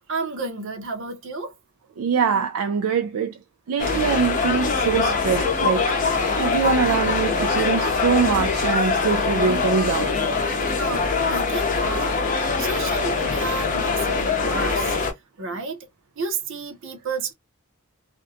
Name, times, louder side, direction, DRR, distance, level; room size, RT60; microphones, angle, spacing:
voice 1, 0.1-1.5 10.8-12.1 12.6-14.9 15.4-15.8 16.2-17.3, right 4 dB, 65° right, 0.7 m, -31 dB
voice 2, 2.0-3.3 3.7-6.0 6.4-10.1, right 6 dB, 80° right, 0.3 m, -23 dB
sound 1, 3.8-15.1, left 4 dB, 40° left, 0.6 m, -23 dB
2.5 x 2.2 x 2.6 m
head